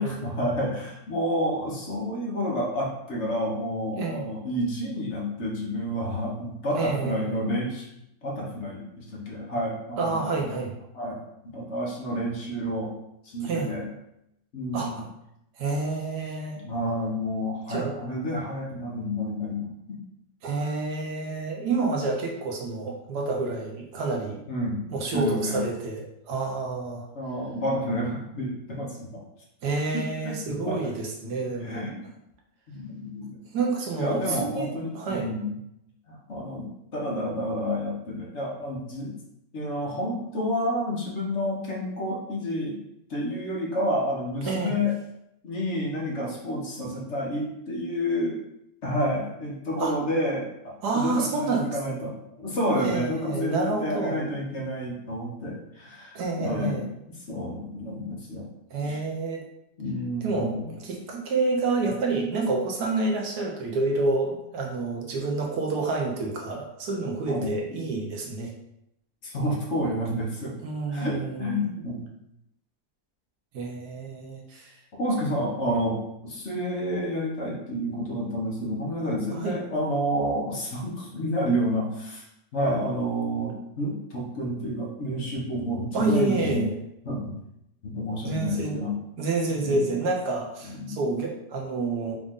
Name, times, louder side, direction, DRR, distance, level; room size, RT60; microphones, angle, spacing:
voice 1, 0.0-7.9 8.2-10.6 10.9-12.9 13.2-13.9 14.5-15.0 16.5-20.0 24.5-24.8 25.1-25.6 27.1-29.2 29.9-30.9 31.2-31.3 31.6-32.0 32.7-33.4 34.0-35.5 36.1-39.2 39.5-42.8 43.1-44.9 45.4-48.4 48.8-58.5 58.8-59.0 59.8-60.7 67.3-67.8 69.2-70.5 70.9-72.1 75.0-82.2 82.5-86.6 87.0-87.4 87.8-88.9 89.4-89.9 90.6-91.1, equal, 50° left, -3 dB, 1.2 m, -30 dB
voice 2, 3.9-4.3 6.7-7.4 10.0-10.7 13.4-13.8 14.7-15.0 15.6-16.6 17.7-17.9 20.4-24.4 24.9-27.1 29.6-31.9 33.5-35.3 44.4-44.7 49.8-49.9 50.8-52.0 52.8-54.3 56.1-56.9 58.7-59.4 60.2-60.5 60.8-68.5 70.6-71.7 73.5-74.7 79.3-79.5 85.9-86.8 88.2-88.8 89.2-92.2, right 3 dB, 90° right, 0 dB, 1.5 m, -28 dB
5.1 x 2.5 x 3.6 m, 0.81 s
omnidirectional pair, 1.7 m